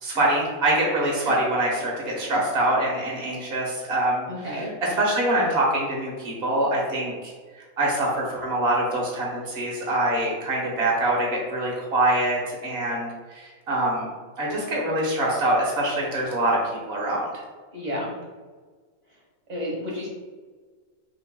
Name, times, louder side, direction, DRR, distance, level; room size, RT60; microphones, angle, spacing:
voice 1, 0.0-4.2 5.0-7.3 7.8-13.4 13.7-14.1 14.4-16.6 16.9-17.2, right 1 dB, 50° right, -3 dB, 1.3 m, -24 dB
voice 2, 4.3-4.7 17.7-18.1 19.5-20.1, left 1 dB, 35° right, -3 dB, 1.1 m, -31 dB
5.8 x 3.1 x 2.2 m, 1.4 s
omnidirectional pair, 1.4 m